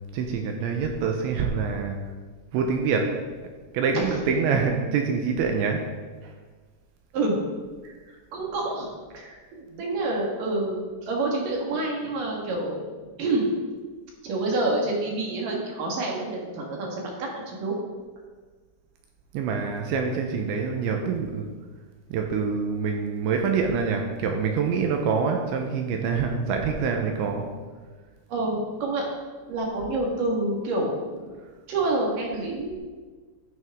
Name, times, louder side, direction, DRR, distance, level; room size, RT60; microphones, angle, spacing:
voice 1, 0.1-2.0 2.5-3.2 3.7-5.9 9.7-9.8 19.3-21.5 22.1-27.5, right 5 dB, 80° right, 3 dB, 2.8 m, -25 dB
voice 2, 7.1-7.4 7.8-8.9 9.1-12.8 13.2-13.5 14.2-17.7 28.3-29.1 29.5-31.3 31.7-32.8, right 2 dB, 55° right, -1 dB, 2.6 m, -28 dB
12.5 x 9.4 x 3.7 m, 1.4 s
omnidirectional pair, 6.0 m